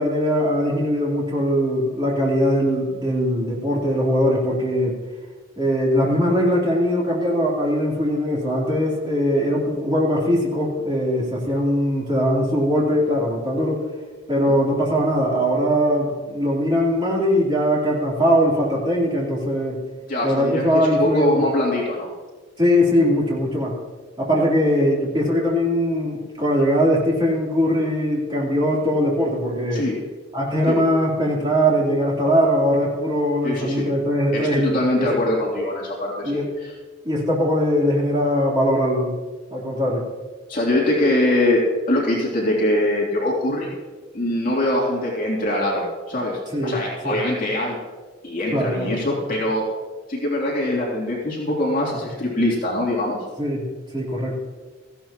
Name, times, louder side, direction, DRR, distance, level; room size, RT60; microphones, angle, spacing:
voice 1, 0.0-5.0 5.6-13.9 14.3-19.8 20.2-21.4 22.6-23.8 24.2-29.8 30.3-35.2 36.2-36.5 37.0-39.2 39.5-40.0 46.5-46.7 47.0-47.2 48.5-48.9 53.4-53.7 53.9-54.4, equal, 25° right, -5 dB, 3.5 m, -21 dB
voice 2, 20.1-22.1 24.3-24.4 29.7-30.0 30.7-30.8 33.4-33.9 34.3-36.3 36.6-36.7 40.5-41.6 41.9-43.7 44.1-47.8 48.2-49.7 50.1-53.2, left 1 dB, 45° left, -4 dB, 3.0 m, -23 dB
17.5 x 15.0 x 3.0 m, 1.4 s
head